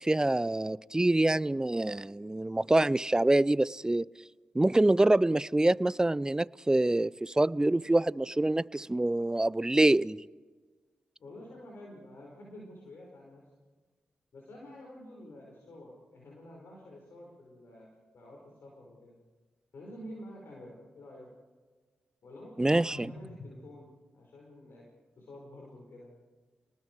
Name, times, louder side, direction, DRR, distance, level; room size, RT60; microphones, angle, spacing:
voice 1, 0.0-4.0 4.5-10.2 22.6-23.0, right 1 dB, 15° right, 0.5 m, -26 dB
voice 2, 11.2-13.5 14.3-19.2 19.7-21.3 22.2-24.9 25.2-26.1, left 1 dB, 70° left, 5.2 m, -49 dB
29.5 x 19.5 x 4.8 m
supercardioid pair, 40°, 4 cm